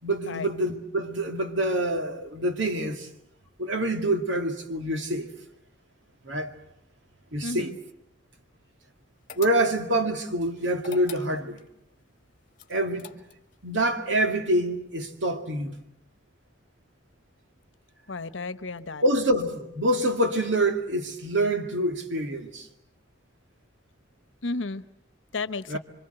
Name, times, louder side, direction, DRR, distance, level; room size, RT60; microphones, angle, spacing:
voice 1, 0.0-3.1 3.6-5.3 6.3-6.5 7.3-7.7 9.4-11.6 12.7-13.1 13.6-15.8 19.0-22.7 25.7-25.8, right 1 dB, 75° right, 2.3 m, -26 dB
voice 2, 7.4-7.8 18.1-19.0 24.4-24.8 25.3-25.8, left 3 dB, 85° left, 1.0 m, -33 dB
sound 1, 9.3-10.0 10.8-11.7 12.6-13.6, left 6 dB, 45° left, 1.8 m, -43 dB
27.0 x 25.0 x 7.9 m
head